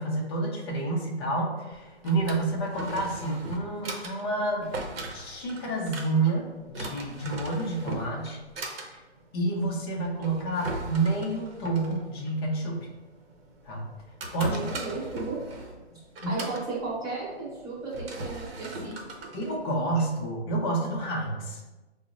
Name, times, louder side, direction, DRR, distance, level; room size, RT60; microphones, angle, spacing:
voice 1, 0.0-4.7 5.1-8.4 9.3-12.9 13.7-13.8 14.3-14.7 16.2-16.4 19.3-21.6, right 2 dB, 25° left, -1 dB, 0.5 m, -29 dB
Drawer open or close, 1.7-20.3, right 2 dB, 60° right, 0.8 m, -40 dB
voice 2, 14.4-15.4 16.3-19.3, right 3 dB, 10° right, -8 dB, 1.0 m, -35 dB
5.5 x 2.0 x 2.4 m, 1.1 s
hypercardioid pair, 145°, 33 cm